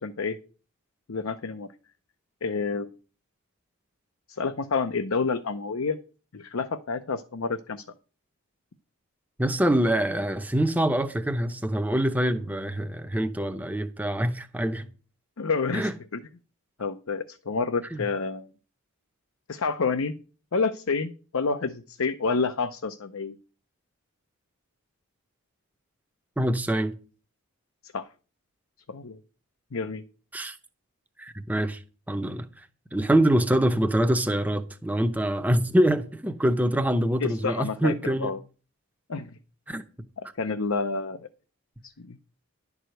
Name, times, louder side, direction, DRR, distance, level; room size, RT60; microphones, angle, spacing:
voice 1, 0.0-0.4 1.1-1.7 2.4-2.9 4.4-6.0 6.3-7.8 15.4-16.2 16.8-18.5 19.5-20.1 20.5-23.4 27.9-28.1 28.9-29.2 29.7-30.0 37.2-37.9 38.2-38.4 39.1-39.3 40.2-41.3 41.8-42.2, left 4 dB, 65° left, 0.6 m, -29 dB
voice 2, 9.4-14.9 15.7-15.9 17.9-18.1 26.4-27.0 30.3-30.6 31.2-31.8 32.1-32.5 32.9-38.4 39.7-39.8, right 1 dB, 5° right, 0.7 m, -25 dB
11.0 x 4.8 x 7.7 m
head